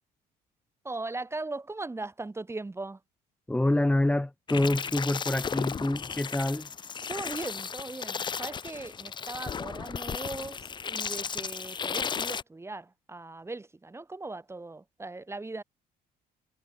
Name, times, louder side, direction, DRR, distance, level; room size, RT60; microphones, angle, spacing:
voice 1, 0.8-3.0 7.1-15.6, right 2 dB, 15° right, 5.5 m, -39 dB
voice 2, 3.5-6.7, left 1 dB, 5° left, 1.4 m, -26 dB
Creature Seizure, 4.5-12.4, left 6 dB, 25° left, 0.6 m, -35 dB
cardioid pair, 110°, 17 cm